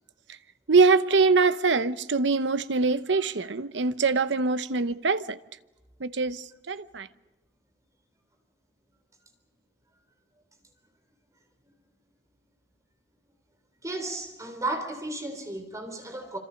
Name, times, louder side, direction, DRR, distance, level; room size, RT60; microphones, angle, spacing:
voice 1, 0.7-5.4 6.0-7.1, right 4 dB, 85° right, 0.9 m, -23 dB
voice 2, 13.8-16.4, right 2 dB, 20° right, 3.7 m, -34 dB
26.5 x 26.5 x 5.3 m
head